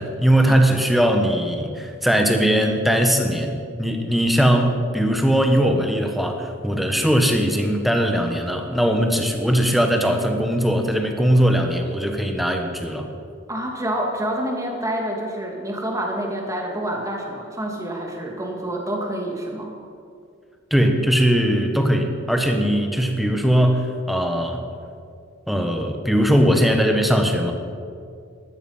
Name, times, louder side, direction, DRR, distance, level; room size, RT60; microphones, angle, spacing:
voice 1, 0.0-13.1 20.7-24.7 25.5-27.5, equal, ahead, 4 dB, 1.2 m, -20 dB
voice 2, 13.5-19.8, right 1 dB, 15° right, 0 dB, 1.9 m, -27 dB
14.0 x 12.0 x 5.6 m, 2.4 s
head